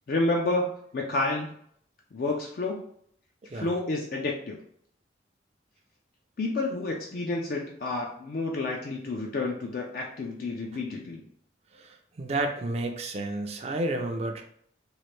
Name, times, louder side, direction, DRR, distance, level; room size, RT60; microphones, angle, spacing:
voice 1, 0.1-1.5 2.1-2.8 3.5-4.6 6.4-11.2, left 2 dB, 50° left, 0 dB, 0.4 m, -30 dB
voice 2, 11.7-14.4, right 2 dB, 35° right, 3 dB, 0.4 m, -31 dB
3.1 x 2.4 x 3.1 m, 0.66 s
head